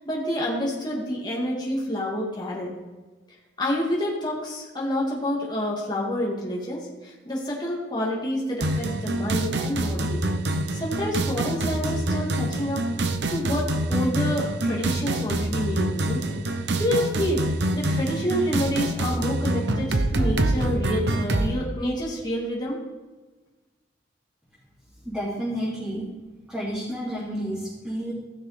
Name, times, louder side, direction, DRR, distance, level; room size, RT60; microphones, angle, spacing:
voice 1, 0.0-2.7 3.3-10.2 10.7-12.9 13.3-22.8, equal, 20° left, -4 dB, 2.2 m, -28 dB
sound 1, 8.6-21.5, right 1 dB, 65° right, 0.9 m, -26 dB
voice 2, 25.0-26.0 26.5-28.1, equal, 5° right, -11 dB, 3.2 m, -30 dB
16.0 x 6.1 x 5.0 m, 1.2 s
head